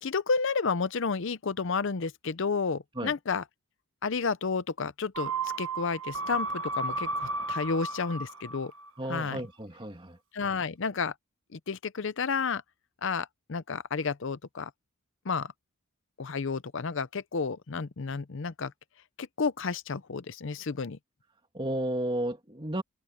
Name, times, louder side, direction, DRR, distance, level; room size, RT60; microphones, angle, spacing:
voice 1, 0.0-3.4 4.0-8.7 9.1-9.4 10.3-11.1 11.5-12.6 13.0-14.7 15.2-15.5 16.2-18.7 19.2-21.0, left 5 dB, 60° left, 0.6 m, -31 dB
sound 1, 5.2-8.9 9.2-9.3, right 3 dB, 75° right, 1.3 m, -34 dB
voice 2, 9.0-10.2 21.5-22.8, right 1 dB, 25° right, 2.2 m, -33 dB
open air
head